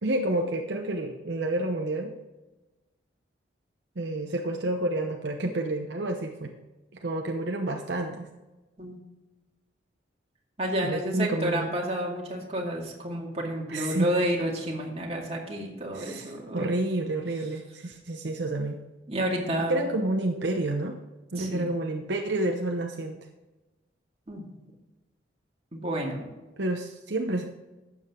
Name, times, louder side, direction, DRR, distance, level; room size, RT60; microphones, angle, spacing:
voice 1, 0.0-2.1 4.0-6.5 7.0-8.3 10.8-11.7 13.7-14.1 15.9-18.8 19.7-21.0 21.3-23.2 26.6-27.4, right 2 dB, 65° right, 3 dB, 0.8 m, -29 dB
voice 2, 10.6-16.7 19.1-19.8 21.3-21.7 24.3-24.5 25.7-26.2, right 1 dB, 35° right, -2 dB, 2.3 m, -30 dB
12.0 x 7.7 x 3.7 m, 1.1 s
head